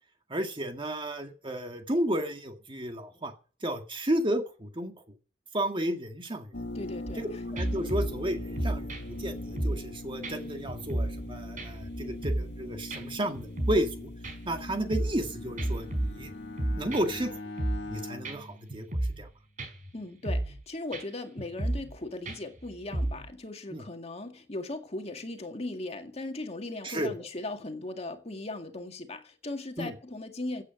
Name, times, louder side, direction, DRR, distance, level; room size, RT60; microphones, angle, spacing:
voice 1, 0.3-3.3 3.6-5.0 5.5-6.5 7.2-14.1 14.5-16.3 16.8-17.4 17.9-18.9 19.2-19.3 23.7-23.8 26.8-27.1 29.8-30.0, right 1 dB, 30° right, 2.0 m, -32 dB
sound 1, 6.5-17.4, left 1 dB, 70° left, 1.8 m, -41 dB
voice 2, 6.7-7.4 19.9-30.6, left 2 dB, 35° left, 2.0 m, -38 dB
sound 2, 7.1-7.3 7.6-9.9 10.2-10.4 10.7-11.3 11.6-12.6 12.9-13.0 13.4-13.9 14.2-15.3 15.6-17.2 17.6-17.9 18.2-18.4 18.7-19.3 19.6-19.9 20.2-20.6 20.9-21.0 21.4-22.0 22.3-23.3, right 1 dB, 50° right, 4.5 m, -32 dB
Bowed string instrument, 14.8-19.4, left 2 dB, 90° left, 1.9 m, -43 dB
16.5 x 8.8 x 6.4 m
head